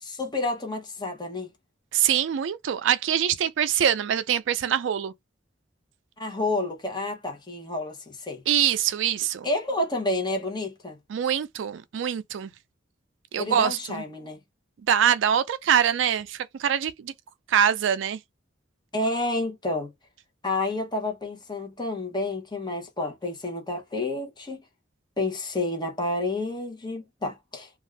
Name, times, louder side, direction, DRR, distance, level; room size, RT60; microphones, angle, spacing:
voice 1, 0.0-1.5 6.2-8.4 9.4-11.0 13.4-14.4 18.9-19.9 20.4-24.6 25.2-27.7, left 2 dB, 25° left, 0.9 m, -29 dB
voice 2, 1.9-5.1 8.5-9.5 11.1-12.5 13.3-14.0 14.9-17.1 17.5-18.2, right 9 dB, 85° right, 0.4 m, -24 dB
2.6 x 2.4 x 3.2 m
head